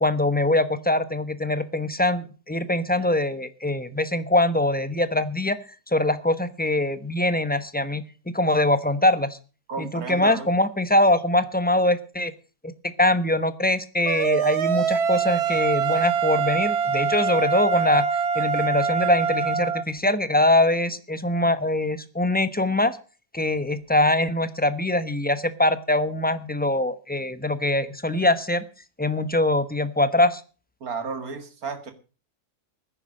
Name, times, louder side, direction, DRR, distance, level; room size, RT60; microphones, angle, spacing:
voice 1, 0.0-5.6 5.9-9.4 9.8-12.3 12.6-18.1 18.3-23.0 23.3-28.6 29.0-30.4, left 1 dB, 10° left, 12 dB, 0.8 m, -23 dB
voice 2, 9.7-10.5 30.8-31.9, right 5 dB, 75° right, 8 dB, 2.5 m, -33 dB
sound 1, 14.1-19.8, right 6 dB, 90° right, 1.5 m, -24 dB
16.5 x 10.0 x 6.5 m, 0.37 s
omnidirectional pair, 1.6 m